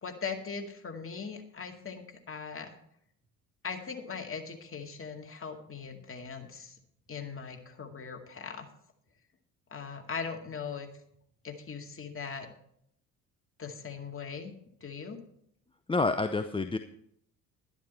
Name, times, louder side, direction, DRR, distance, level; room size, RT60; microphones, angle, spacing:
voice 1, 0.0-2.8 3.6-6.8 7.1-8.7 9.7-10.9 11.4-12.5 13.6-14.5 14.8-15.2, left 5 dB, 30° left, 4 dB, 2.1 m, -40 dB
voice 2, 15.9-16.8, left 3 dB, 10° left, 9 dB, 0.6 m, -28 dB
11.5 x 11.0 x 4.3 m, 0.70 s
hypercardioid pair, 60°, 46 cm